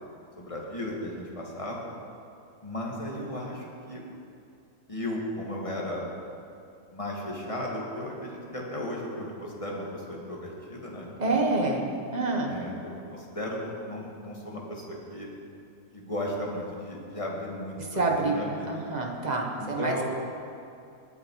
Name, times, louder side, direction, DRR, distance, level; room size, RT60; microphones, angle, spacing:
voice 1, 0.4-1.9 2.6-4.0 4.9-6.0 6.9-11.4 12.5-15.3 15.9-18.7 19.6-20.0, left 1 dB, 20° left, -3 dB, 2.0 m, -35 dB
voice 2, 11.2-11.8 12.1-12.5 17.8-20.0, right 3 dB, 30° right, 1 dB, 1.4 m, -27 dB
20.0 x 8.5 x 4.7 m, 2.6 s
omnidirectional pair, 1.6 m